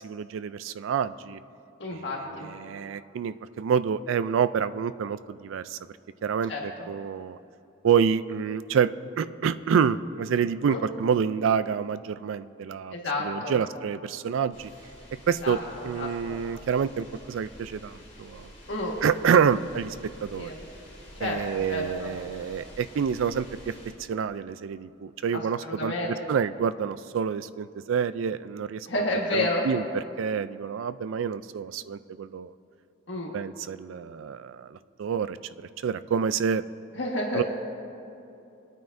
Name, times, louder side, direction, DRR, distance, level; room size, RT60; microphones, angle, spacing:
voice 1, 0.0-1.4 2.4-5.8 6.2-6.5 6.9-7.4 7.8-8.9 9.2-12.9 13.2-14.7 15.3-15.6 15.8-18.5 19.0-19.9 20.2-20.5 21.2-23.7 24.1-29.0 29.3-29.8 30.2-32.5 33.3-35.4 35.8-36.6 37.3-37.4, right 7 dB, 80° right, 14 dB, 0.3 m, -27 dB
voice 2, 1.8-2.5 6.5-6.9 10.7-10.8 12.9-13.6 15.4-16.4 18.7-19.0 20.3-20.6 21.2-22.1 25.3-26.3 28.9-29.8 33.1-33.3 36.9-37.4, left 1 dB, 70° left, -2 dB, 1.6 m, -31 dB
sound 1, 14.5-23.9, left 1 dB, 35° left, 2.9 m, -48 dB
22.0 x 9.2 x 2.6 m, 2.7 s
head